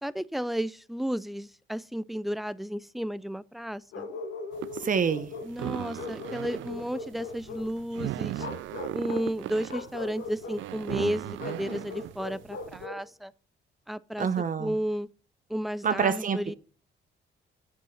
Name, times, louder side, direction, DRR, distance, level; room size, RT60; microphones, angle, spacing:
voice 1, 0.0-4.1 5.4-8.5 8.9-13.3 13.9-14.3 14.6-15.1 15.5-16.5, equal, ahead, 0.4 m, -33 dB
Bark, 3.9-5.5 6.0-7.7 8.3-9.3 9.7-10.6 11.4-13.1, left 3 dB, 85° left, 1.9 m, -39 dB
sound 1, 4.5-12.9, right 15 dB, 75° right, 0.4 m, -37 dB
voice 2, 4.8-5.3 14.2-14.7 15.8-16.5, right 6 dB, 40° right, 0.9 m, -27 dB
7.3 x 6.3 x 7.1 m
cardioid pair, 90°, 20 cm